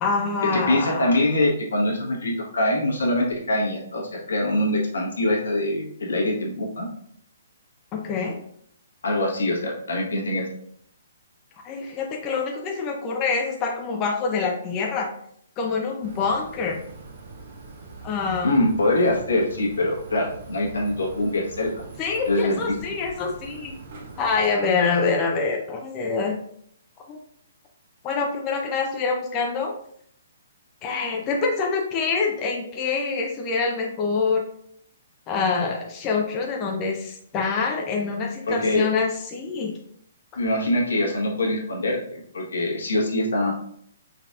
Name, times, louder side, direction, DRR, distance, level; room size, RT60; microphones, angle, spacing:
voice 1, 0.0-1.2 7.9-8.4 11.6-15.1 15.6-16.8 18.0-18.5 22.0-23.7 24.2-26.4 27.1-27.2 28.0-29.7 30.8-34.4 35.3-39.7, left 4 dB, 25° left, 0 dB, 0.5 m, -25 dB
voice 2, 0.5-6.9 9.0-10.5 18.4-21.8 22.3-22.6 38.5-38.9 40.4-43.5, left 1 dB, 75° left, -2 dB, 1.3 m, -24 dB
sound 1, 16.0-24.5, right 3 dB, 50° right, 1.1 m, -42 dB
4.1 x 3.9 x 2.4 m, 0.66 s
hypercardioid pair, 135°, 0 cm